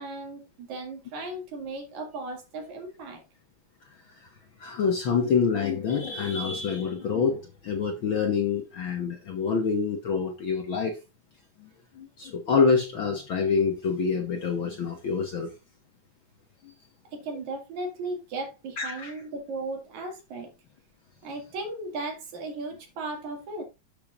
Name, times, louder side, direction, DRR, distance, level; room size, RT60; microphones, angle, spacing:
voice 1, 0.0-3.2 17.1-20.5 21.2-23.6, right 2 dB, 75° right, 3.5 m, -36 dB
voice 2, 3.9-4.3 4.6-11.0 11.6-11.7 11.9-15.5 16.6-16.7 18.8-19.1, left 5 dB, 60° left, 1.4 m, -26 dB
12.0 x 7.2 x 2.5 m
omnidirectional pair, 3.4 m